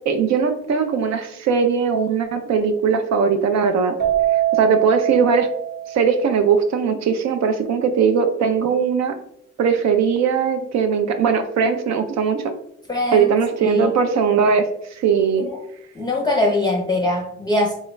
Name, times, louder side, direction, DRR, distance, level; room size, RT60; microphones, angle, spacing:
voice 1, 0.1-3.9 4.3-5.5 5.9-9.1 9.6-12.5 13.1-15.5, right 6 dB, 65° right, 7 dB, 0.4 m, -19 dB
Keyboard (musical), 4.0-6.5, right 12 dB, 35° right, 0.9 m, -23 dB
voice 2, 12.9-13.3 13.6-13.9 15.4-15.6 15.9-17.7, left 1 dB, 15° left, -2 dB, 0.6 m, -22 dB
3.2 x 2.3 x 3.0 m, 0.73 s
cardioid pair, 90°, 30 cm